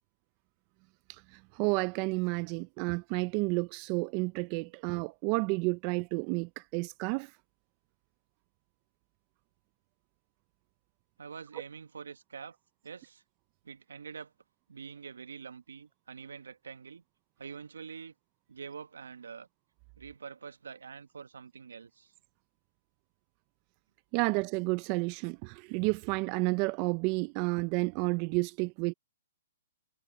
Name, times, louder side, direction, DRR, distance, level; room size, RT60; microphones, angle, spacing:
voice 1, 1.1-7.3 24.1-28.9, right 28 dB, 35° right, 0.5 m, -31 dB
voice 2, 11.2-12.6 12.8-13.2 13.6-14.3 14.7-17.0 17.4-18.1 18.5-19.5 20.0-22.1, right 6 dB, 85° right, 1.4 m, -46 dB
hypercardioid pair, 135°, 0 cm